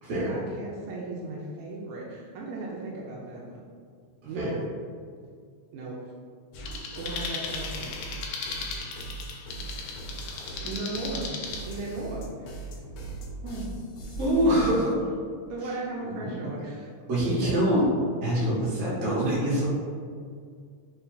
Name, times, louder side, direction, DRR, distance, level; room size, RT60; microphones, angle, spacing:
voice 1, 0.1-3.6 4.2-4.5 5.7-6.1 7.0-7.9 10.6-11.3 11.6-12.8 13.4-13.7 14.4-14.8 15.5-16.9 17.3-17.6, right 2 dB, 85° right, -4 dB, 2.0 m, -36 dB
sound 1, 6.5-15.0, right 2 dB, 75° left, 1.6 m, -39 dB
sound 2, 6.7-11.6, left 5 dB, 90° left, 2.0 m, -37 dB
voice 2, 14.2-14.9 15.6-15.7 16.0-16.5 17.1-17.8 18.2-19.7, equal, 60° right, -9 dB, 2.5 m, -25 dB
5.6 x 2.3 x 3.9 m, 2.1 s
omnidirectional pair, 3.4 m